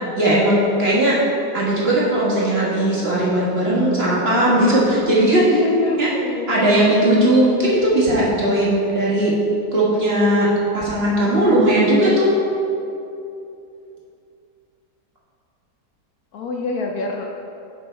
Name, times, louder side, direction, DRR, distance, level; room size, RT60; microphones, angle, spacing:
voice 1, 0.2-1.2 1.5-5.5 6.0-6.1 6.5-9.3 9.7-10.5 10.7-12.3, right 1 dB, 40° right, -6 dB, 1.5 m, -17 dB
voice 2, 5.4-6.5 16.3-17.4, left 3 dB, 70° left, 1 dB, 1.0 m, -25 dB
10.5 x 4.1 x 4.4 m, 2.7 s
omnidirectional pair, 1.8 m